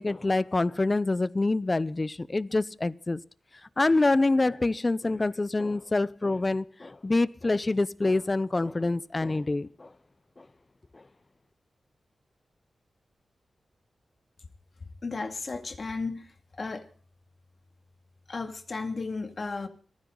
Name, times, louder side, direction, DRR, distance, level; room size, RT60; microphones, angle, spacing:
voice 1, 0.0-3.2 3.8-9.9 10.4-10.5 10.9-11.0, left 2 dB, 30° left, 0.7 m, -26 dB
voice 2, 15.0-16.3 16.6-16.9 18.3-19.7, left 3 dB, 50° left, 2.2 m, -34 dB
28.5 x 10.5 x 3.9 m
cardioid pair, 65°, 0 cm